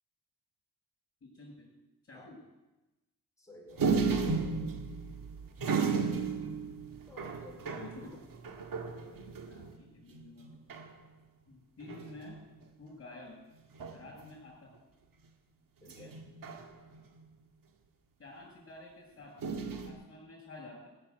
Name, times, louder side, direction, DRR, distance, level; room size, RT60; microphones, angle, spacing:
voice 1, 1.2-1.7 2.0-2.4 7.7-8.2 9.5-10.5 11.5-12.4 12.8-13.4 13.9-14.7 15.9-16.1 18.2-19.3 19.8-20.9, left 2 dB, 40° left, -7 dB, 7.0 m, -50 dB
voice 2, 3.4-4.1 7.1-8.2 8.5-8.7 13.9-14.1 15.8-16.2, left 1 dB, 10° left, -1 dB, 5.2 m, -54 dB
sound 1, 3.8-9.8 10.1-10.2 10.4-10.9 11.8-12.4 13.8-14.3 15.9-17.2 19.4-19.9, right 5 dB, 65° right, 2.0 m, -34 dB
16.0 x 7.7 x 9.7 m, 1.0 s
cardioid pair, 95°, 35 cm